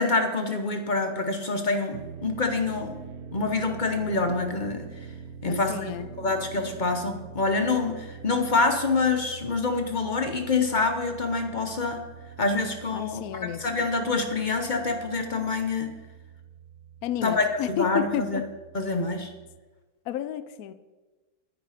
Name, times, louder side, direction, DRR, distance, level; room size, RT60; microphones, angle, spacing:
voice 1, 0.0-3.0 3.3-4.9 5.4-5.9 6.2-12.0 12.4-13.2 13.6-15.9 17.2-18.4 18.7-19.3, left 3 dB, 40° left, 5 dB, 0.7 m, -26 dB
sound 1, 1.9-19.6, right 7 dB, 60° right, 1.2 m, -44 dB
voice 2, 5.5-6.1 12.9-13.7 17.0-18.4 20.1-20.7, left 11 dB, 70° left, 13 dB, 0.8 m, -31 dB
10.0 x 9.9 x 5.0 m, 1.2 s
omnidirectional pair, 2.1 m